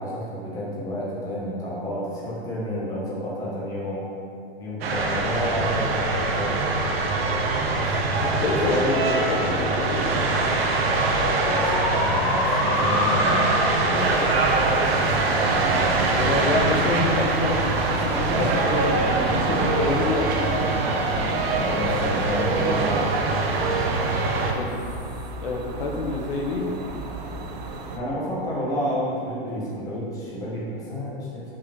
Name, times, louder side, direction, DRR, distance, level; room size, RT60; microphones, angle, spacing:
voice 1, 0.0-4.0 4.6-6.6 7.8-8.0 8.6-9.0 11.5-16.3 18.3-19.6 20.6-20.7 21.6-23.1 27.4-27.5 27.9-31.4, equal, 10° left, -6 dB, 1.1 m, -30 dB
sound 1, 4.8-24.5, right 3 dB, 70° right, 1.1 m, -23 dB
voice 2, 8.2-10.4 16.1-19.2 19.5-20.7 21.2-21.4 24.5-24.7 25.4-26.7, left 3 dB, 60° left, 0 dB, 1.0 m, -27 dB
sound 2, 8.4-17.2, left 3 dB, 30° left, 0.5 m, -30 dB
sound 3, 14.0-28.0, right 3 dB, 40° right, 0.6 m, -33 dB
5.7 x 4.8 x 5.1 m, 2.4 s
supercardioid pair, 175°, 31 cm